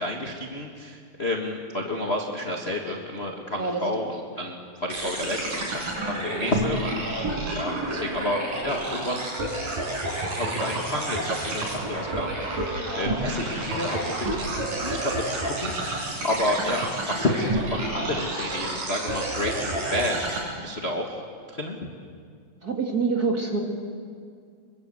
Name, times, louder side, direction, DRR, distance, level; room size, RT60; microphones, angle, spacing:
voice 1, 0.0-7.0 7.5-9.3 10.3-14.4 14.7-20.1 20.6-21.2 21.5-21.9, left 1 dB, 25° left, 0 dB, 1.4 m, -30 dB
sound 1, 4.9-20.4, right 1 dB, 75° right, 7.6 m, -30 dB
voice 2, 22.6-23.6, right 4 dB, 30° right, 1 dB, 2.7 m, -25 dB
27.5 x 23.0 x 8.0 m, 2.1 s
omnidirectional pair, 3.9 m